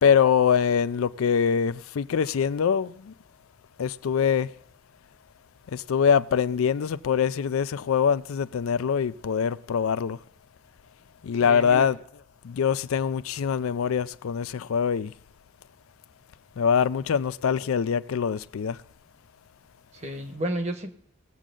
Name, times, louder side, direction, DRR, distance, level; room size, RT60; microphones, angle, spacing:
voice 1, 0.0-3.1 3.8-4.5 5.7-10.2 11.2-12.0 12.4-15.1 16.6-18.8, left 7 dB, 85° left, 0.4 m, -24 dB
voice 2, 11.3-11.9 19.9-21.0, right 1 dB, 30° right, 1.0 m, -32 dB
19.5 x 7.4 x 3.8 m
head